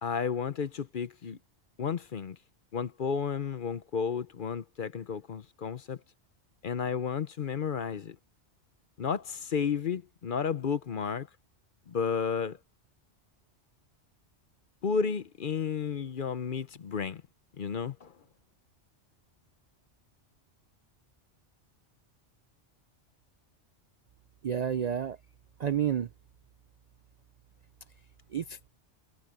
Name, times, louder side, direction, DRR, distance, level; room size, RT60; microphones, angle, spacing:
voice 1, 0.0-1.4 1.8-2.4 2.7-6.0 6.6-8.2 9.0-11.3 11.9-12.6 14.8-17.2 17.6-18.1, left 6 dB, 50° left, 0.8 m, -32 dB
voice 2, 24.4-25.2 25.6-26.1 28.3-28.7, right 9 dB, 55° right, 0.4 m, -30 dB
omnidirectional pair, 1.2 m